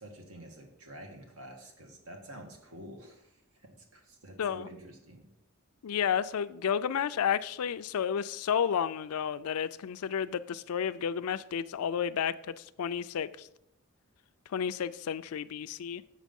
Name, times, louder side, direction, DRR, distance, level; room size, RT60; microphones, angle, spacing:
voice 1, 0.0-5.2, right 1 dB, 85° right, 3 dB, 1.6 m, -49 dB
voice 2, 5.8-13.5 14.5-16.0, left 8 dB, 85° left, 15 dB, 0.4 m, -31 dB
7.4 x 6.6 x 5.3 m, 0.84 s
head